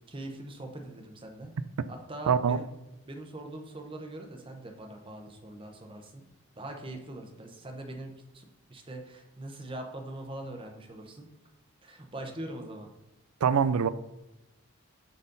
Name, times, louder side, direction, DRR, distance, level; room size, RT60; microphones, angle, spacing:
voice 1, 0.1-1.5 1.9-2.7 3.1-6.3 6.6-11.3 11.8-12.9, right 1 dB, 25° right, 0.8 m, -42 dB
voice 2, 2.3-2.6 13.4-13.9, right 7 dB, 85° right, 0.4 m, -23 dB
9.3 x 4.1 x 3.9 m
head